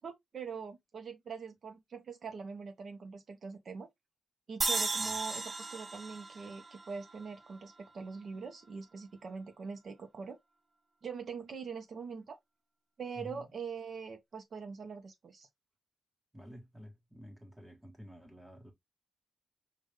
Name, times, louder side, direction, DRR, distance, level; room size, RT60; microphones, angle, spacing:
voice 1, 0.0-3.9 4.5-10.4 11.0-12.4 13.0-15.5, right 5 dB, 50° right, 0.9 m, -43 dB
sound 1, 4.6-7.9, right 3 dB, 25° right, 0.4 m, -36 dB
voice 2, 13.1-13.5 16.3-18.7, equal, 5° right, 1.4 m, -51 dB
5.6 x 2.6 x 3.2 m
wide cardioid pair, 145°, 0 cm